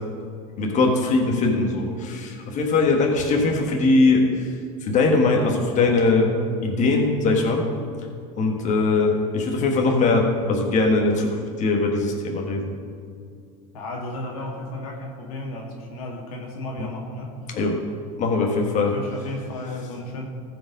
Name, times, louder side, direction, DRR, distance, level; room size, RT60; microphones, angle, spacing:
voice 1, 0.6-4.5 4.8-6.3 6.6-7.6 8.4-12.7 16.8-16.9 17.5-17.8 18.2-18.9, left 3 dB, 45° left, 1 dB, 1.5 m, -21 dB
voice 2, 13.7-17.4 18.4-18.5 18.9-20.3, left 1 dB, 90° left, 0 dB, 1.9 m, -34 dB
14.5 x 5.2 x 5.2 m, 2.3 s
supercardioid pair, 100°, 18 cm